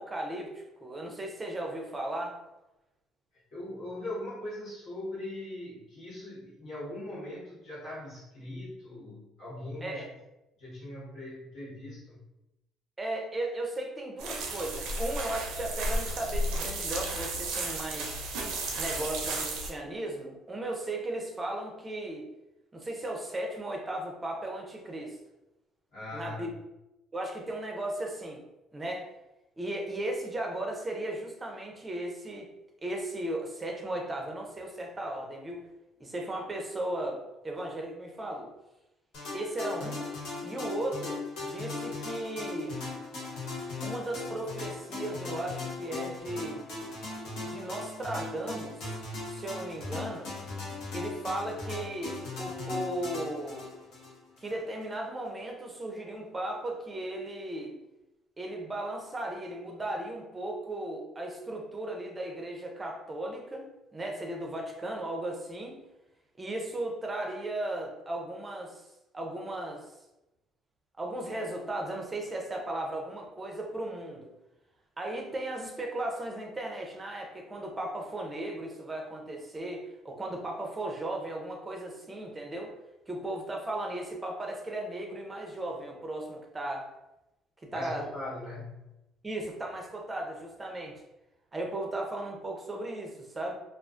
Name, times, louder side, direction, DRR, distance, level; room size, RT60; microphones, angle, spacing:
voice 1, 0.0-2.4 9.8-10.1 13.0-18.2 18.8-22.2 22.7-25.2 26.1-26.5 27.1-28.4 28.7-29.0 29.6-32.5 32.8-35.6 36.0-38.5 39.3-40.1 40.4-42.8 43.8-46.7 47.4-49.0 49.3-50.3 50.9-53.7 54.4-57.7 58.4-65.8 66.4-68.8 69.1-69.8 71.0-74.3 75.0-82.7 83.1-86.9 87.7-88.0 89.2-90.9 91.5-93.5, right 1 dB, 20° right, 1 dB, 0.6 m, -36 dB
voice 2, 3.5-10.1 10.6-12.2 25.9-26.5 87.6-88.8, left 1 dB, 60° left, -8 dB, 1.3 m, -40 dB
sound 1, 14.2-19.7, right 2 dB, 80° right, 0.5 m, -33 dB
sound 2, 39.1-54.6, left 3 dB, 75° left, 0.9 m, -38 dB
2.4 x 2.3 x 2.3 m, 0.94 s
cardioid pair, 95°, 0 cm